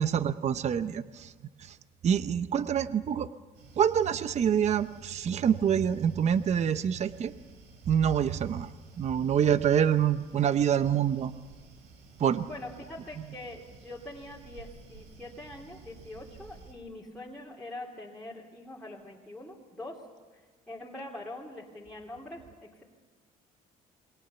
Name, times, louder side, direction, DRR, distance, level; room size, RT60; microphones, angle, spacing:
voice 1, 0.0-1.3 1.6-1.8 2.0-3.3 3.8-7.3 7.9-8.7 9.0-11.3 12.2-12.5 13.2-13.4, right 8 dB, 40° right, 12 dB, 0.8 m, -26 dB
sound 1, 3.5-16.7, right 4 dB, 85° right, 4.2 m, -53 dB
voice 2, 12.4-20.0 20.3-20.4 20.7-22.8, left 1 dB, 5° left, -5 dB, 3.2 m, -43 dB
28.0 x 22.5 x 6.9 m, 1.4 s
cardioid pair, 110°, 17 cm